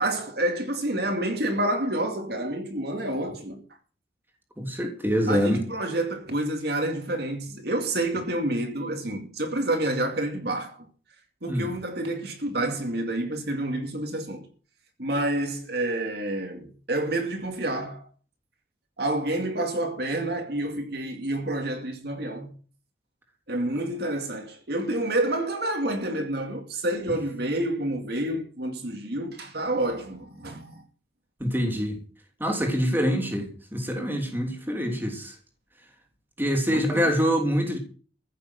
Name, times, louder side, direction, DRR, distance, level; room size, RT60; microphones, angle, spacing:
voice 1, 0.0-3.6 5.3-10.9 11.4-14.5 15.0-18.0 19.0-22.5 23.5-30.8 36.7-37.1, right 1 dB, 55° right, 2.3 m, -28 dB
voice 2, 4.6-5.6 11.5-11.7 31.4-32.0 32.4-35.4 36.4-37.8, equal, 10° right, 3.2 m, -25 dB
15.0 x 7.0 x 7.9 m
head